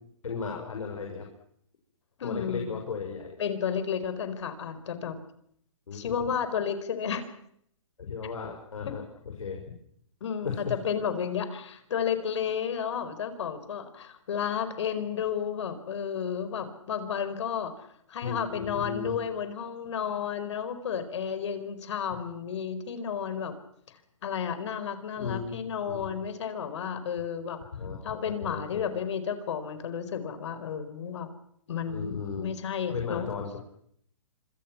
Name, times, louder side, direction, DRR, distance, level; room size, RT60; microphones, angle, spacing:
voice 1, 0.2-1.3 2.2-3.4 5.9-6.1 8.0-9.6 10.4-10.7 18.2-19.1 25.2-25.6 25.9-26.1 27.7-28.9 31.9-32.5 32.9-33.6, left 5 dB, 85° left, 2 dB, 5.6 m, -35 dB
voice 2, 2.2-2.7 3.4-5.2 5.9-7.3 8.9-9.0 10.2-23.5 23.9-27.6 28.0-31.3 31.7-33.3, left 7 dB, 60° left, 11 dB, 4.6 m, -32 dB
26.5 x 26.0 x 6.1 m, 0.67 s
hypercardioid pair, 150°, 17 cm